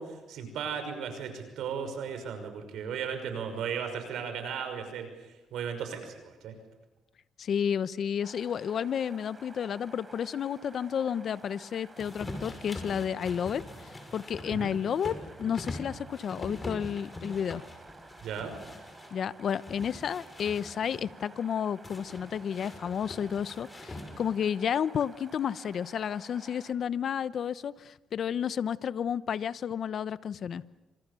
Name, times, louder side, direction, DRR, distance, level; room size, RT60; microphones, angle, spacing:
voice 1, 0.0-5.1 5.5-6.6 14.5-14.7 18.2-18.5, right 7 dB, 80° right, 7 dB, 5.9 m, -36 dB
voice 2, 7.4-17.6 19.1-30.6, left 8 dB, 60° left, 16 dB, 0.9 m, -31 dB
sound 1, 8.2-26.7, right 3 dB, 25° right, 4.6 m, -52 dB
sound 2, 12.0-19.1 19.5-21.1 21.8-24.4, left 2 dB, 25° left, 5.9 m, -43 dB
28.0 x 26.5 x 7.0 m, 1.0 s
cardioid pair, 90°, 0 cm